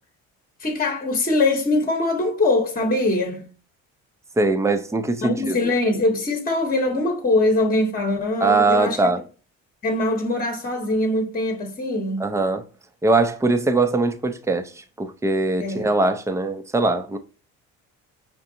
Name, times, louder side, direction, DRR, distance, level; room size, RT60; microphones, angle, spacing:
voice 1, 0.6-3.5 5.2-9.1 9.8-12.3 15.6-15.9, left 2 dB, 25° left, 1.1 m, -22 dB
voice 2, 4.4-5.6 8.4-9.2 12.2-12.6 13.0-14.7 15.0-17.2, right 3 dB, 5° right, 0.6 m, -21 dB
5.7 x 2.6 x 2.7 m
hypercardioid pair, 55°, 38 cm